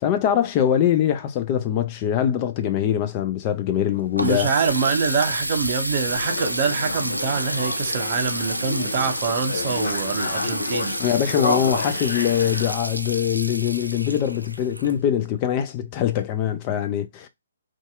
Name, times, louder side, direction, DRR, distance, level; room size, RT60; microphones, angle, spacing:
voice 1, 0.0-4.5 11.0-17.3, left 10 dB, 25° left, 0.3 m, -23 dB
Water tap faucet, 3.7-15.4, right 1 dB, 85° right, 0.3 m, -30 dB
voice 2, 4.2-10.9, right 5 dB, 40° right, 0.6 m, -25 dB
sound 1, 6.1-12.8, left 3 dB, 55° left, 0.7 m, -30 dB
2.6 x 2.4 x 2.2 m
figure-of-eight pair, 130°, 0 cm